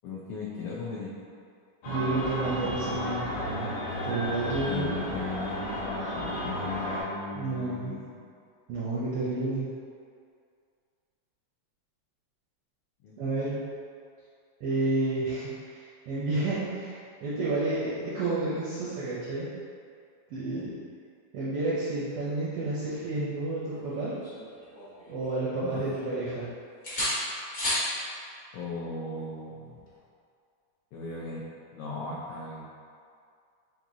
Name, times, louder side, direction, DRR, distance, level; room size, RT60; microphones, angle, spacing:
voice 1, 0.0-1.1 4.6-8.2 13.0-13.2 20.5-20.7 25.6-25.8 28.5-29.9 30.9-31.4 31.7-32.7, left 4 dB, 85° left, -5 dB, 1.3 m, -37 dB
sound 1, 1.8-7.0, equal, 65° left, 1.9 m, -33 dB
voice 2, 1.9-3.7 4.0-5.0 7.3-8.0 8.7-9.7 13.2-13.6 14.6-19.5 20.3-20.8 21.3-24.1 25.1-26.5, right 2 dB, 75° right, -9 dB, 1.3 m, -30 dB
sound 2, 23.7-25.3 25.6-26.4 26.8-27.9 29.8-30.0, left 1 dB, 40° left, 1.1 m, -33 dB
7.2 x 2.8 x 2.6 m, 2.3 s
omnidirectional pair, 3.3 m